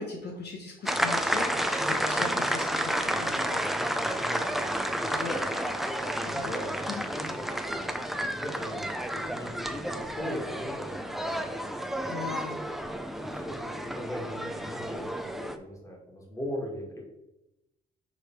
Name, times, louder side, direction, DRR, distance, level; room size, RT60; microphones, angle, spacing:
voice 1, 0.0-3.6 5.1-5.3 6.2-6.5 6.9-7.1 12.1-12.6, left 4 dB, 55° left, 1 dB, 1.0 m, -38 dB
sound 1, 0.9-15.6, equal, ahead, 0.5 m, -31 dB
voice 2, 1.2-1.7 3.0-11.5 13.2-17.0, equal, 15° left, -1 dB, 1.9 m, -40 dB
6.6 x 3.2 x 4.6 m, 0.95 s
cardioid pair, 90°, 20 cm